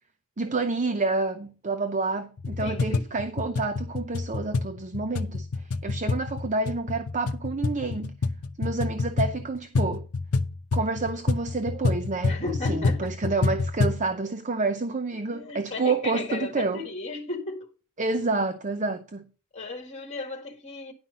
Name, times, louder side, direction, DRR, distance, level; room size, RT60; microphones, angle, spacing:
voice 1, 0.4-5.5 5.8-8.1 8.6-10.1 10.7-16.8 18.0-19.3, right 3 dB, 35° right, 0.7 m, -29 dB
sound 1, 2.4-14.0, left 3 dB, 75° left, 0.7 m, -28 dB
voice 2, 2.6-3.1 12.2-13.1 15.3-17.7 19.5-20.9, left 3 dB, 30° left, 1.7 m, -35 dB
10.5 x 5.8 x 5.2 m
head